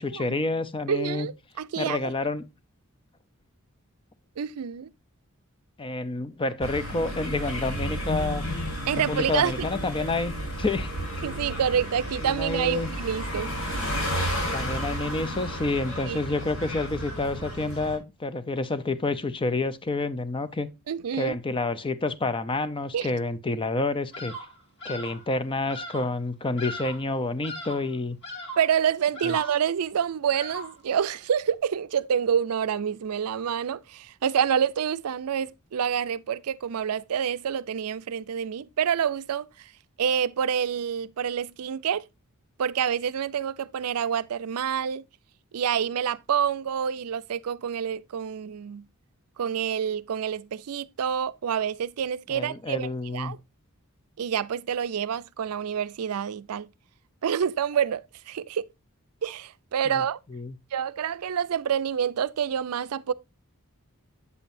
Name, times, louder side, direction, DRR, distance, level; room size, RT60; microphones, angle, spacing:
voice 1, 0.0-1.3 1.8-2.4 5.8-8.5 9.1-10.9 12.2-12.9 14.5-20.7 21.1-24.3 24.8-28.2 29.2-29.4 52.3-53.4 59.9-60.0 60.3-60.6, left 2 dB, 25° left, 0.5 m, -29 dB
voice 2, 0.9-2.0 4.4-4.9 8.9-9.7 11.2-13.5 16.1-16.2 20.9-21.4 22.9-23.1 28.6-39.7 40.0-42.0 42.6-45.0 45.5-48.8 49.4-53.4 54.2-56.7 57.2-58.7 59.2-60.2 60.7-63.1, right 8 dB, 85° right, 0.4 m, -27 dB
sound 1, 6.6-18.0, equal, 70° left, 5.1 m, -32 dB
Bird vocalization bird call bird song, 24.1-24.5 24.8-25.2 25.7-26.1 26.6-27.1 27.4-27.9 28.2-28.7 29.1-29.7 30.3-30.9, equal, 55° left, 1.9 m, -38 dB
8.2 x 7.3 x 2.6 m
head